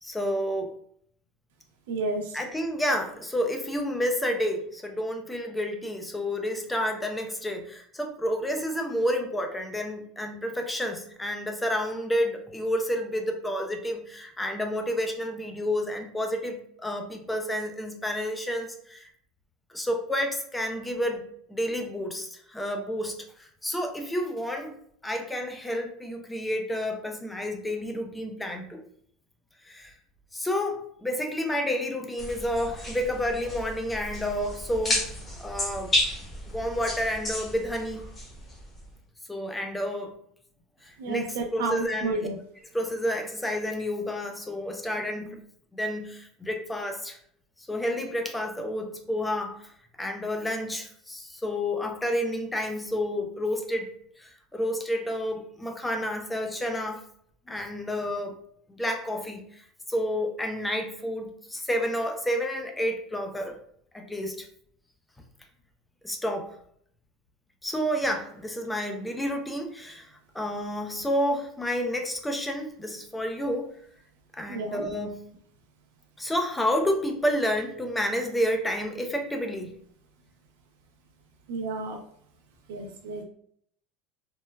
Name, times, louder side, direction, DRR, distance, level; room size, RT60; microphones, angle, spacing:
voice 1, 0.0-0.7 2.3-19.1 19.7-21.2 21.5-24.8 25.0-28.8 29.7-29.9 30.3-35.1 35.4-35.9 36.5-38.0 39.3-40.1 40.8-42.2 42.7-45.4 45.7-47.2 47.7-49.7 50.0-57.0 57.5-58.4 58.8-59.6 59.9-63.6 63.9-64.5 66.0-66.5 67.6-70.1 70.3-73.7 74.3-75.2 76.2-79.7, equal, 10° left, 3 dB, 0.4 m, -30 dB
voice 2, 1.9-2.4 41.0-42.3 74.5-74.9 81.5-82.0 82.7-83.2, right 3 dB, 85° right, 3 dB, 0.5 m, -31 dB
sound 1, 32.2-38.9, left 1 dB, 25° left, 0.8 m, -32 dB
3.1 x 2.1 x 2.2 m, 0.65 s
supercardioid pair, 135°, 0 cm